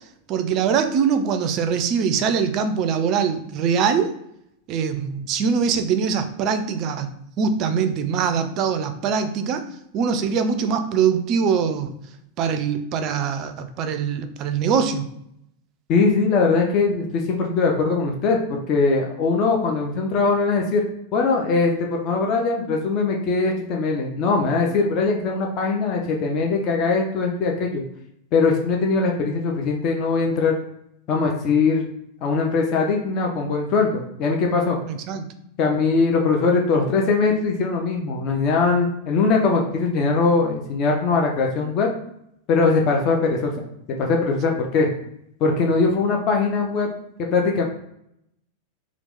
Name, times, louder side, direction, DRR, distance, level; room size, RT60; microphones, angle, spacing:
voice 1, 0.3-4.1 4.7-7.1 7.4-9.6 9.9-11.9 12.4-15.1 34.9-35.3, right 6 dB, 40° right, 8 dB, 0.4 m, -22 dB
voice 2, 15.9-20.8 21.1-27.8 28.3-30.6 31.1-31.8 32.2-34.8 35.6-41.9 42.5-43.6 44.0-44.9 45.4-46.9 47.3-47.6, left 4 dB, 40° left, 1 dB, 0.6 m, -21 dB
2.8 x 2.4 x 3.6 m, 0.77 s
figure-of-eight pair, 90°, 0 cm